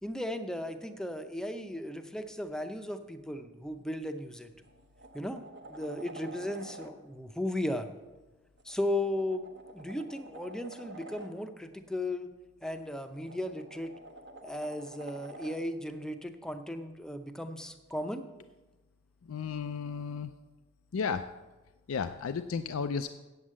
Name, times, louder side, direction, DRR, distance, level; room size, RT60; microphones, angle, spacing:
voice 1, 0.0-4.5 5.1-7.9 8.6-9.5 9.7-12.3 12.6-13.9 14.4-18.3, left 1 dB, 5° left, 8 dB, 0.6 m, -36 dB
sound 1, 4.0-4.2 4.6-6.9 8.6-11.3 12.8-15.6 17.9-18.0, right 1 dB, 55° right, 1.0 m, -49 dB
voice 2, 19.3-20.3 20.9-21.2 21.9-23.1, left 5 dB, 85° left, 9 dB, 0.4 m, -33 dB
8.3 x 8.1 x 7.4 m, 1.1 s
head